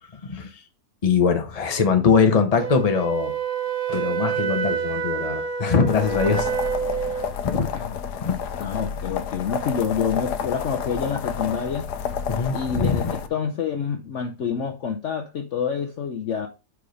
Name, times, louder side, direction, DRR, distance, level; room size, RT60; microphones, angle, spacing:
voice 1, 1.0-3.3 3.9-6.5 7.4-7.7 8.2-8.4 12.3-13.1, left 5 dB, 30° left, 0.9 m, -22 dB
Wind instrument woodwind instrument, 2.6-7.3, right 7 dB, 45° right, 0.4 m, -27 dB
sound 1, 5.9-13.3, left 7 dB, 80° left, 1.3 m, -30 dB
voice 2, 8.6-11.9 12.5-16.5, left 6 dB, 55° left, 0.9 m, -27 dB
4.9 x 4.9 x 5.2 m
omnidirectional pair, 1.7 m